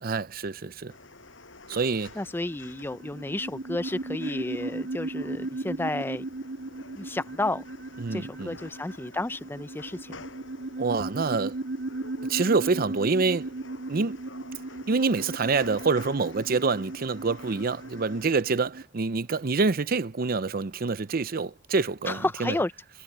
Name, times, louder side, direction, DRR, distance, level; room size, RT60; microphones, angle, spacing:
voice 1, 0.0-0.9 1.7-2.2 8.0-8.6 10.8-11.6 12.3-13.5 13.9-14.2 14.9-22.5, right 4 dB, 50° right, 0.7 m, -26 dB
sound 1, 0.9-18.4, left 3 dB, 85° left, 7.6 m, -49 dB
voice 2, 2.2-6.2 7.0-7.6 8.1-10.1 22.1-22.7, left 2 dB, 10° left, 0.5 m, -31 dB
sound 2, 2.5-18.8, right 2 dB, 70° right, 3.2 m, -36 dB
head